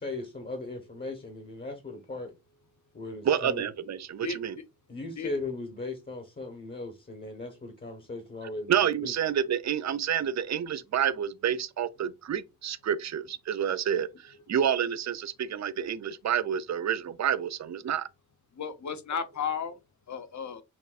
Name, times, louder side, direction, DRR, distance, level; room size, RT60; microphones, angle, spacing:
voice 1, 0.0-2.3 2.9-3.6 4.9-9.1, left 2 dB, 30° left, 0.9 m, -38 dB
voice 2, 3.2-4.6 8.7-18.1, right 9 dB, 55° right, 0.5 m, -29 dB
voice 3, 18.6-19.8 20.1-20.6, left 6 dB, 55° left, 0.7 m, -34 dB
5.9 x 2.6 x 2.4 m
wide cardioid pair, 75°, 34 cm